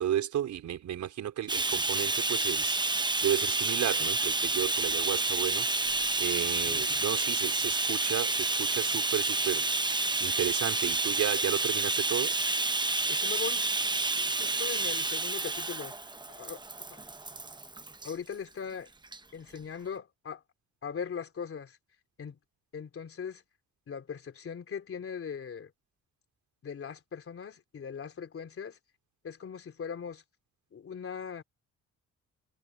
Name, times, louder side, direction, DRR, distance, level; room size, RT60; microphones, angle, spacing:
voice 1, 0.0-2.9 3.2-5.9 6.2-9.6 10.2-12.4, right 10 dB, 70° right, 4.5 m, -33 dB
Bathtub (filling or washing), 1.5-18.1 19.0-19.2 19.6-19.7, right 3 dB, 15° right, 1.0 m, -29 dB
voice 2, 6.6-7.0 13.1-13.9 14.2-15.9 16.3-17.0 18.0-18.9 19.3-20.4 20.8-21.8 22.2-22.4 22.7-23.4 23.9-25.7 26.6-28.8 29.2-30.2 30.7-31.4, left 6 dB, 45° left, 3.4 m, -40 dB
cardioid pair, 90°, 30 cm